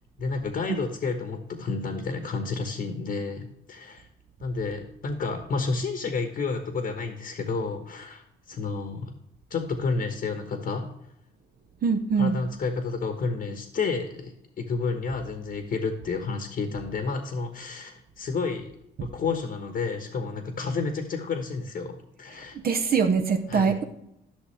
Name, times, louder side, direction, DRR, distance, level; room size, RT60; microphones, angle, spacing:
voice 1, 0.2-4.1 4.4-9.1 9.5-10.9 12.2-18.7 19.0-22.6 23.5-23.7, left 4 dB, 55° left, 5 dB, 1.2 m, -30 dB
voice 2, 11.8-12.4 19.0-19.1 22.5-23.8, right 5 dB, 50° right, 6 dB, 0.8 m, -23 dB
11.5 x 6.2 x 3.3 m, 0.81 s
cardioid pair, 90°, 20 cm